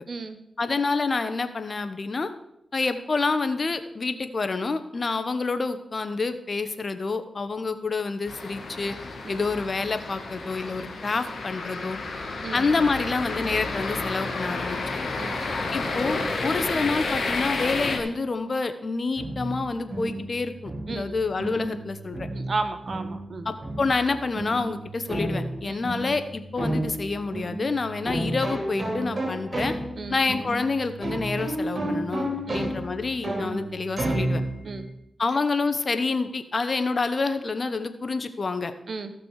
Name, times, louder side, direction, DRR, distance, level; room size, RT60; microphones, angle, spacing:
voice 1, 0.1-0.4 9.2-9.4 12.4-12.7 15.2-15.5 20.9-21.1 22.3-23.5 25.6-25.8 30.0-30.2 32.5-32.7 34.6-34.8 38.9-39.1, right 3 dB, 65° right, 9 dB, 1.0 m, -33 dB
voice 2, 0.6-2.3 2.7-8.9 9.3-12.0 12.5-14.8 15.7-22.3 23.4-29.7 30.1-34.4 35.2-38.7, left 4 dB, 50° left, 10 dB, 1.0 m, -28 dB
sound 1, 8.3-18.0, left 3 dB, 70° left, 1.5 m, -31 dB
sound 2, 19.2-34.8, right 1 dB, 45° right, 4.2 m, -32 dB
15.0 x 6.0 x 4.8 m, 0.80 s
cardioid pair, 50°, 0 cm